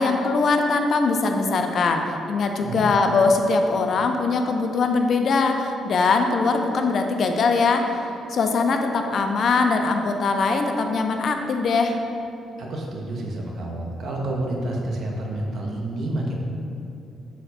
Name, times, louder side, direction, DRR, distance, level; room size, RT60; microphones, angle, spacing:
voice 1, 0.0-8.0 8.3-12.0, left 4 dB, 55° left, 5 dB, 0.3 m, -21 dB
voice 2, 2.6-2.9 12.6-16.3, right 1 dB, 60° right, -1 dB, 0.6 m, -29 dB
4.1 x 2.2 x 4.1 m, 2.7 s
cardioid pair, 90°, 0 cm